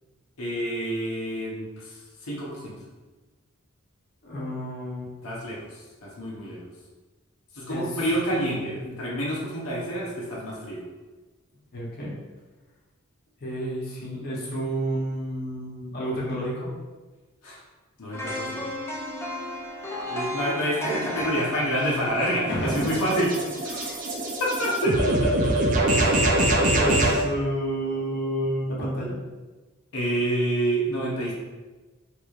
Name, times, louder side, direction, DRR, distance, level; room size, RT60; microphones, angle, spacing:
voice 1, 0.4-2.7 5.2-6.6 7.5-10.8 17.4-17.6 18.0-18.6 20.1-23.3 23.6-24.0 24.4-25.0 29.9-31.3, right 1 dB, 85° left, -5 dB, 0.8 m, -28 dB
voice 2, 4.2-5.1 7.7-8.0 8.3-9.2 11.7-12.1 13.4-16.7 22.5-23.0 25.9-26.4 26.7-29.2, equal, 50° left, -5 dB, 0.8 m, -30 dB
sound 1, 18.1-24.1 24.5-24.7, left 1 dB, 10° left, 0.5 m, -35 dB
sound 2, 21.8-27.2, right 1 dB, 40° right, 0.5 m, -24 dB
3.3 x 3.0 x 2.4 m, 1.2 s
head